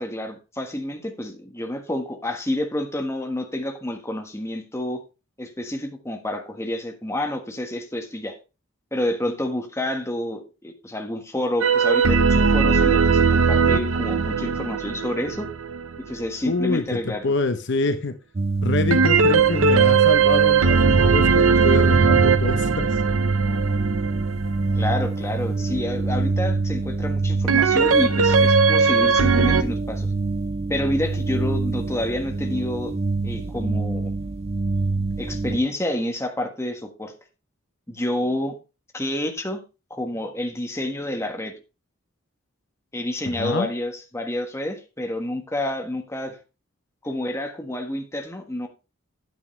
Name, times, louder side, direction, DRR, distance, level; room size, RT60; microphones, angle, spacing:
voice 1, 0.0-5.0 5.4-8.3 8.9-15.5 16.1-17.3 24.7-30.1 30.7-32.9 33.2-34.1 35.2-37.1 37.9-38.6 38.9-39.6 39.9-41.5 42.9-46.4 47.0-48.7, left 1 dB, 15° left, 4 dB, 1.4 m, -28 dB
sound 1, 11.6-16.2 18.9-24.9 27.5-29.6, right 5 dB, 85° right, 0.7 m, -19 dB
voice 2, 16.5-18.1 18.6-23.0 43.3-43.7, left 3 dB, 60° left, 8 dB, 0.8 m, -26 dB
sound 2, 18.3-35.6, right 3 dB, 30° right, 0.4 m, -25 dB
9.5 x 9.3 x 3.2 m, 0.30 s
head